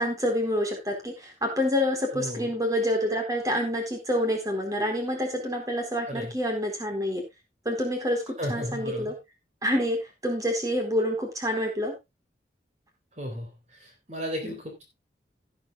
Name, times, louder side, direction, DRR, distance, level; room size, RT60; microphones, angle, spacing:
voice 1, 0.0-7.2 7.6-9.2 9.6-12.0 14.4-14.6, equal, 20° right, 2 dB, 4.0 m, -27 dB
voice 2, 2.1-2.5 6.1-6.3 8.4-9.1 13.2-13.5 13.8-14.8, equal, 40° right, 3 dB, 3.6 m, -34 dB
17.5 x 9.0 x 2.3 m, 0.22 s
head